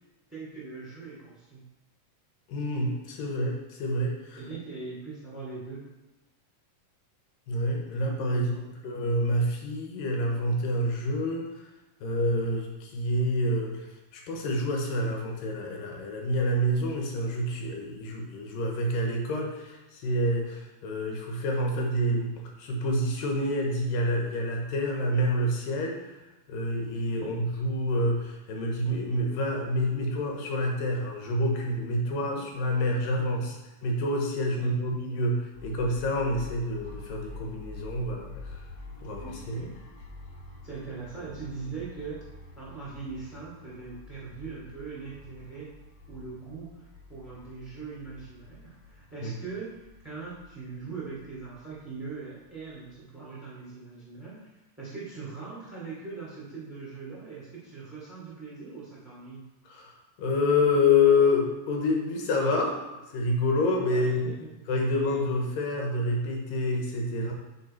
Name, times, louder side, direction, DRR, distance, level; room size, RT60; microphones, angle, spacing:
voice 1, 0.3-1.6 4.3-5.9 8.2-8.7 27.2-27.4 32.0-32.5 33.0-33.5 34.6-34.9 39.2-39.8 40.6-45.7 46.1-54.5 54.8-59.4 63.8-64.6, right 4 dB, 5° right, -6 dB, 1.8 m, -41 dB
voice 2, 2.5-4.4 7.5-11.5 12.0-13.9 14.1-22.3 22.6-26.2 26.5-33.6 33.8-38.5 39.0-39.6 49.2-49.3 59.7-62.8 63.1-64.3 64.7-67.3, left 1 dB, 85° left, 1 dB, 2.8 m, -27 dB
sound 1, 35.5-53.1, left 2 dB, 55° left, 1.5 m, -47 dB
9.2 x 4.4 x 4.4 m, 1.0 s
omnidirectional pair, 3.9 m